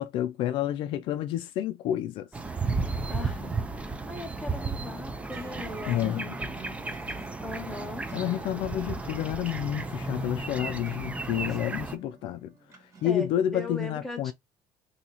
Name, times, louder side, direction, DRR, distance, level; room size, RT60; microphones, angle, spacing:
voice 1, 0.0-2.3 5.9-6.4 8.1-12.5 13.0-14.3, left 11 dB, 65° left, 0.4 m, -29 dB
sound 1, 2.3-12.0, right 3 dB, 15° right, 0.5 m, -34 dB
voice 2, 3.1-7.0 7.4-8.0 13.0-14.3, left 2 dB, 5° left, 1.2 m, -40 dB
sound 2, 5.1-13.6, right 4 dB, 35° right, 1.2 m, -51 dB
2.8 x 2.8 x 4.0 m
cardioid pair, 125°, 9 cm